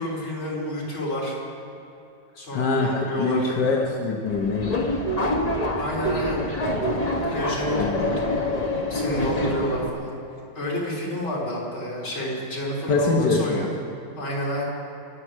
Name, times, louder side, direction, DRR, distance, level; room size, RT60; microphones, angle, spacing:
voice 1, 0.0-1.4 2.4-3.5 5.8-6.6 7.2-8.1 8.9-10.2 10.5-13.7 14.1-14.6, equal, 75° left, -6 dB, 4.6 m, -29 dB
voice 2, 2.5-4.9 7.8-8.0 12.9-13.7, left 3 dB, 60° left, -1 dB, 1.7 m, -23 dB
Subway metro underground, 4.3-9.9, left 1 dB, 25° left, 0.9 m, -26 dB
23.0 x 8.8 x 6.4 m, 2.8 s
omnidirectional pair, 2.3 m